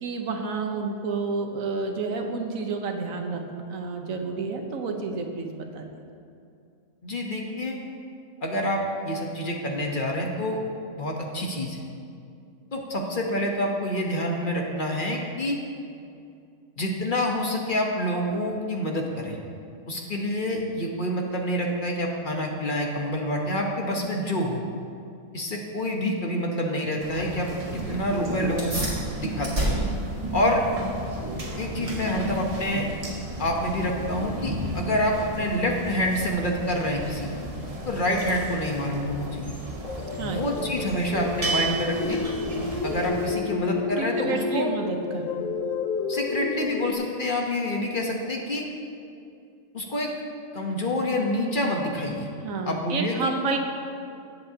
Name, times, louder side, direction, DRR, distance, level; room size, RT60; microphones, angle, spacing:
voice 1, 0.0-6.0 40.2-40.6 44.0-45.3 52.4-53.6, right 4 dB, 80° right, 3 dB, 1.3 m, -30 dB
voice 2, 7.0-7.8 8.4-10.6 11.0-11.8 12.7-15.6 16.8-19.4 19.9-24.6 25.3-29.8 30.3-30.6 31.6-32.9 33.4-37.5 37.8-39.6 40.2-42.2 42.5-44.7 46.1-48.7 49.7-50.1 50.5-52.3 52.6-53.3, left 1 dB, 40° left, 0 dB, 1.1 m, -27 dB
sound 1, 27.0-43.3, right 1 dB, 30° right, 0.9 m, -34 dB
sound 2, 28.6-38.5, right 1 dB, 55° right, 3.2 m, -35 dB
sound 3, 39.7-46.9, left 5 dB, 80° left, 1.1 m, -31 dB
17.5 x 7.4 x 2.8 m, 2.4 s
omnidirectional pair, 1.4 m